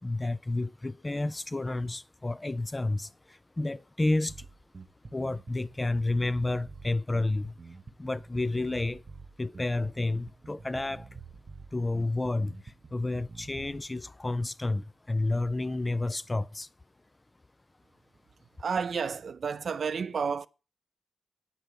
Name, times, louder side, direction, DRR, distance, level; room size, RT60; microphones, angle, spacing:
voice 1, 0.0-4.5 5.1-7.5 8.0-9.0 9.4-11.1 11.7-16.7, left 2 dB, 20° left, 0.5 m, -30 dB
Bass guitar, 4.3-13.9, right 4 dB, 35° right, 1.1 m, -48 dB
voice 2, 18.6-20.5, right 6 dB, 65° right, 0.6 m, -31 dB
9.1 x 7.0 x 6.3 m
cardioid pair, 80°, 0 cm